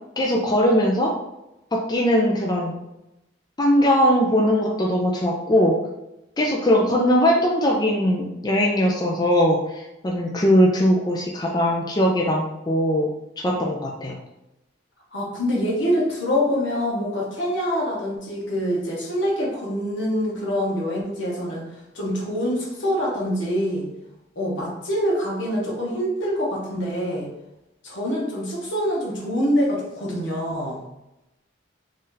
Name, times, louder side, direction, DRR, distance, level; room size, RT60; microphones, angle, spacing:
voice 1, 0.2-1.1 1.7-2.8 3.6-5.8 6.4-13.1 13.4-14.2, equal, 20° left, -1 dB, 0.4 m, -20 dB
voice 2, 15.1-21.7 21.9-23.9 24.4-27.3 27.8-30.8, equal, 75° left, -3 dB, 1.2 m, -25 dB
3.2 x 2.7 x 3.8 m, 0.92 s
head